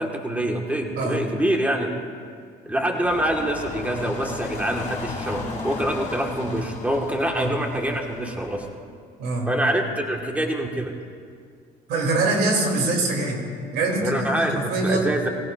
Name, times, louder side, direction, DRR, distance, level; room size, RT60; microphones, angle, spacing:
voice 1, 0.0-1.9 2.6-8.6 9.5-10.9 14.0-15.3, right 1 dB, 10° right, 2 dB, 1.6 m, -25 dB
sound 1, 3.0-8.7, left 3 dB, 45° left, 3.2 m, -35 dB
voice 2, 9.2-9.5 11.9-13.4 13.7-15.1, right 2 dB, 80° right, 0 dB, 2.9 m, -24 dB
18.0 x 17.0 x 2.5 m, 2.1 s
cardioid pair, 110°, 17 cm